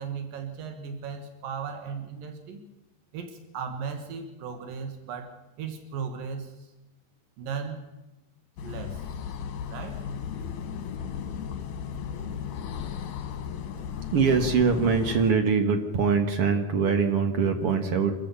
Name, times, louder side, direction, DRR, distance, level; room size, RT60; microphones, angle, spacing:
voice 1, 0.0-2.6 3.1-6.7 7.4-7.9 8.6-9.0 9.7-10.1, right 6 dB, 85° right, 6 dB, 3.3 m, -36 dB
sound 1, 8.6-15.3, left 7 dB, 70° left, 3.0 m, -35 dB
voice 2, 14.1-18.2, right 5 dB, 50° right, 6 dB, 2.0 m, -23 dB
25.5 x 14.5 x 7.0 m, 1.0 s
omnidirectional pair, 3.9 m